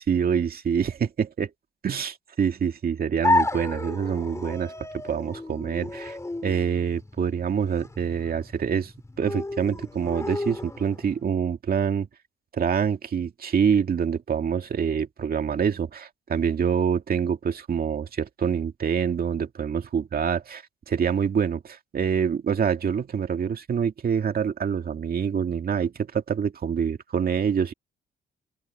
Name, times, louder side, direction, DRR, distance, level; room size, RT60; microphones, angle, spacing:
voice 1, 0.0-1.5 1.8-8.9 9.2-12.1 12.5-27.7, right 7 dB, 50° right, 2.2 m, -26 dB
sound 1, 3.2-11.2, left 2 dB, 15° left, 3.9 m, -31 dB
open air
cardioid pair, 90°, 20 cm